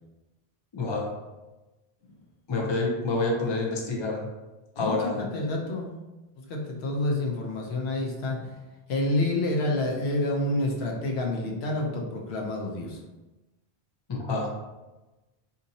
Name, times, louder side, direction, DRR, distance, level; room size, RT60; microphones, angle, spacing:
voice 1, 0.7-1.2 2.5-4.3 4.8-5.3 14.1-14.6, left 2 dB, 35° left, 0 dB, 0.5 m, -28 dB
voice 2, 4.8-5.9 6.4-8.5 8.9-13.0, left 2 dB, 85° left, 0 dB, 0.9 m, -28 dB
2.7 x 2.6 x 3.9 m, 1.1 s
omnidirectional pair, 1.0 m